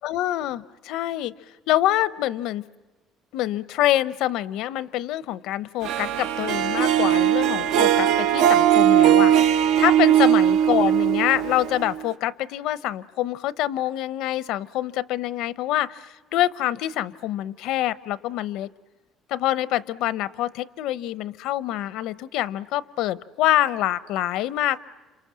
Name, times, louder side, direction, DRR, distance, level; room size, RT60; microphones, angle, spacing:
voice 1, 0.0-1.3 1.7-2.6 3.3-18.7 19.3-24.8, left 14 dB, 70° left, 17 dB, 0.8 m, -26 dB
Harp, 5.8-12.1, right 11 dB, 70° right, 1.0 m, -19 dB
29.0 x 27.0 x 7.5 m, 1.2 s
cardioid pair, 170°, 0 cm